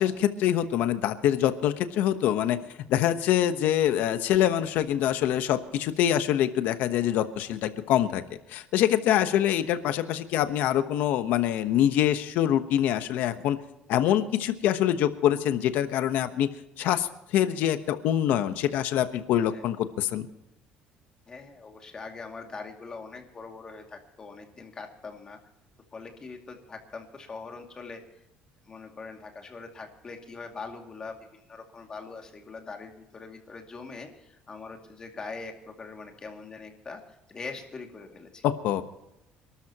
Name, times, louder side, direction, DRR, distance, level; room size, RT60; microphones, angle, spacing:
voice 1, 0.0-2.6 2.9-8.2 8.5-13.6 13.9-16.5 16.8-20.3 38.4-38.8, left 11 dB, 70° left, 10 dB, 1.1 m, -25 dB
voice 2, 21.3-25.4 25.9-28.2 28.6-37.0 37.3-38.5, left 4 dB, 25° left, 3 dB, 2.4 m, -42 dB
27.5 x 13.0 x 3.0 m, 0.88 s
cardioid pair, 155°, 3 cm